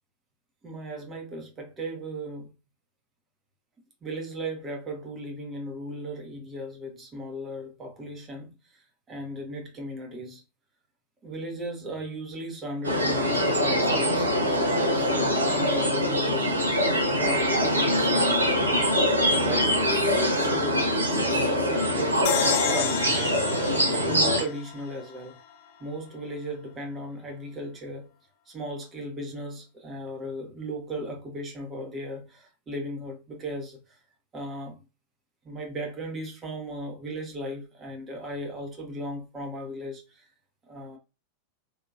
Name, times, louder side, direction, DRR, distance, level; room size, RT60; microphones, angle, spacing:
voice 1, 0.6-2.5 4.0-10.4 11.2-16.5 17.2-18.9 19.4-22.2 22.7-23.4 23.9-25.4 25.8-28.1 28.5-34.0 34.3-34.8 35.4-40.3 40.7-41.0, equal, 25° right, 1.0 m, -36 dB
sound 1, 12.8-24.4, equal, 80° right, 0.6 m, -24 dB
sound 2, 22.2-25.6, left 9 dB, 50° left, 0.4 m, -32 dB
2.8 x 2.8 x 2.4 m
figure-of-eight pair, 90°, 0 cm